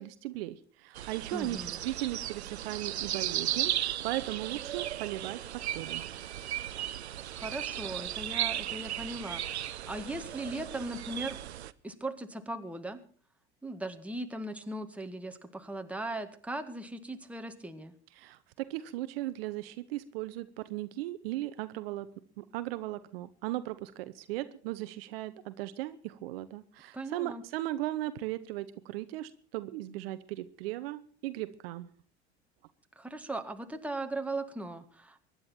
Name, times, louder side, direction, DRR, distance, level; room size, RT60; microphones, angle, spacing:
voice 1, 0.0-5.4 5.7-6.1 18.2-22.1 22.4-31.9, right 16 dB, 60° right, 13 dB, 1.0 m, -37 dB
sound 1, 0.9-11.7, right 12 dB, 75° right, 0.7 m, -36 dB
voice 2, 1.3-1.8 7.3-11.4 11.8-13.0 13.6-17.9 26.9-27.4 33.0-35.2, right 2 dB, 5° right, 5 dB, 1.9 m, -38 dB
24.0 x 10.5 x 4.3 m, 0.43 s
figure-of-eight pair, 70°, 33 cm